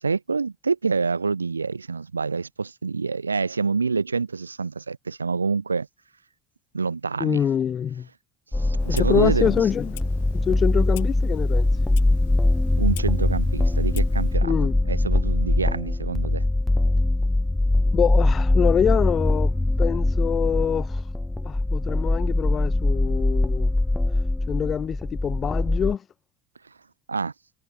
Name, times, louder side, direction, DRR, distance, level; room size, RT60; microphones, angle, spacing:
voice 1, 0.0-5.9 6.7-7.4 8.5-9.5 12.8-14.5 14.9-16.4 27.1-27.3, right 4 dB, 85° right, 0.7 m, -26 dB
voice 2, 7.2-8.1 8.9-10.0 10.3-11.7 14.4-14.7 17.9-21.0 21.4-23.7 24.5-26.0, left 8 dB, 35° left, 1.5 m, -25 dB
sound 1, 8.5-25.9, left 2 dB, 10° left, 1.0 m, -22 dB
Clock, 8.8-14.4, left 21 dB, 65° left, 2.1 m, -44 dB
figure-of-eight pair, 65°, 0 cm